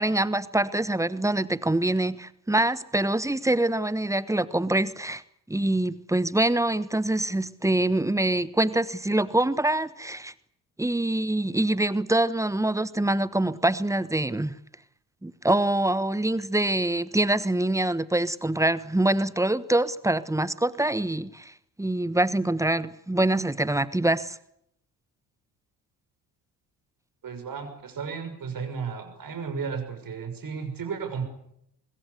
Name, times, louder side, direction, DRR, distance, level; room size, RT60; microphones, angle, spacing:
voice 1, 0.0-5.2 5.5-10.3 10.8-14.5 15.2-24.4, right 1 dB, 5° right, 18 dB, 1.2 m, -25 dB
voice 2, 27.2-31.2, right 6 dB, 40° right, 8 dB, 6.3 m, -34 dB
25.0 x 21.5 x 8.3 m, 0.76 s
figure-of-eight pair, 45°, 50 cm